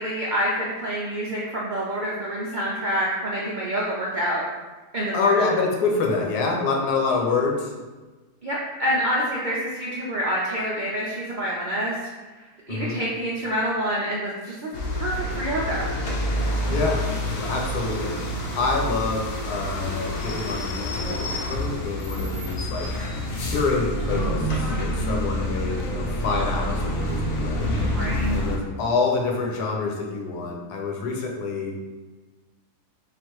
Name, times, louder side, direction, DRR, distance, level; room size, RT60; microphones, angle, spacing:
voice 1, 0.0-4.4 4.9-5.5 8.4-12.0 12.7-15.9 25.0-25.3 27.9-28.3, equal, 70° right, -5 dB, 0.4 m, -27 dB
voice 2, 5.1-7.7 12.7-13.0 16.7-17.0 17.5-18.3 18.5-22.9 23.4-27.7 28.3-31.8, left 4 dB, 90° left, 0 dB, 1.3 m, -26 dB
sound 1, 14.7-28.6, equal, 75° left, 1.2 m, -27 dB
3.8 x 2.5 x 4.6 m, 1.3 s
omnidirectional pair, 1.7 m